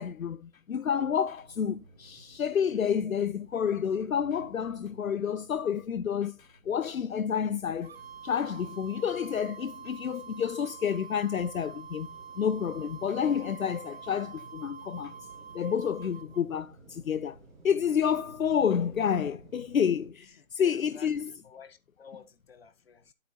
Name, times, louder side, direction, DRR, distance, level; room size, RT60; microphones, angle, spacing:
voice 1, 0.0-8.0 8.2-12.1 12.4-15.1 15.5-17.4 17.6-21.3, left 7 dB, 70° left, 0.7 m, -29 dB
sound 1, 0.9-20.1, right 2 dB, 5° right, 1.2 m, -55 dB
sound 2, 7.8-16.5, right 7 dB, 45° right, 1.0 m, -46 dB
voice 2, 20.6-23.1, left 6 dB, 45° left, 1.2 m, -52 dB
9.7 x 8.4 x 2.8 m
figure-of-eight pair, 160°, 43 cm